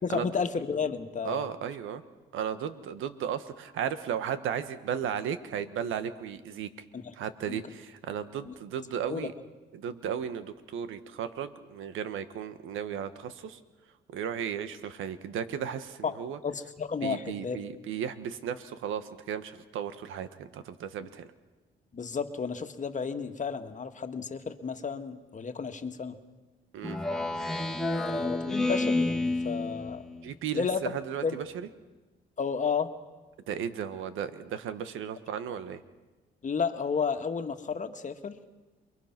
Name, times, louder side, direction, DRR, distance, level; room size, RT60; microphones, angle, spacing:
voice 1, 0.0-1.5 6.9-7.1 7.5-7.6 8.5-8.6 9.1-9.3 16.0-16.1 16.4-17.6 21.9-26.2 27.9-30.0 30.5-30.8 31.2-31.3 32.4-32.9 36.4-38.4, left 5 dB, 40° left, 7 dB, 1.8 m, -32 dB
voice 2, 1.2-2.0 2.3-6.7 7.1-9.3 9.7-13.6 14.1-16.4 17.0-21.3 26.7-27.0 30.2-31.7 33.5-35.8, right 8 dB, 85° right, 11 dB, 1.6 m, -35 dB
Speech synthesizer, 26.8-30.4, left 2 dB, ahead, 2.3 m, -30 dB
28.5 x 22.5 x 6.1 m, 1.2 s
cardioid pair, 90°, 20 cm